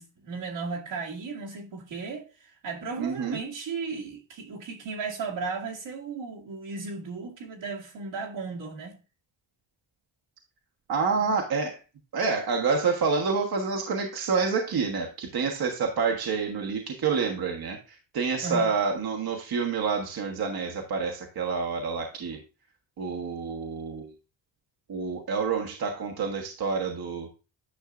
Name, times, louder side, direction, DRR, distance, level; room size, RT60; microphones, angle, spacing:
voice 1, 0.0-9.0 11.2-11.4 18.4-18.7, right 4 dB, 75° right, 2.3 m, -35 dB
voice 2, 3.0-3.4 10.9-11.8 12.1-22.4 23.0-24.1 24.9-27.3, right 5 dB, 55° right, 1.4 m, -28 dB
10.0 x 5.6 x 2.5 m
cardioid pair, 85°, 44 cm